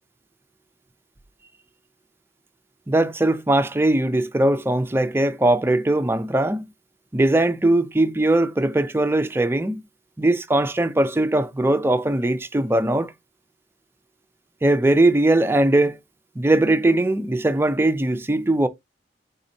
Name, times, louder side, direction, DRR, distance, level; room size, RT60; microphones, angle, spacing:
voice 1, 2.9-6.6 7.1-9.8 10.2-13.1 14.6-16.0 16.4-18.7, right 1 dB, 15° right, 0.4 m, -20 dB
4.0 x 4.0 x 2.6 m
head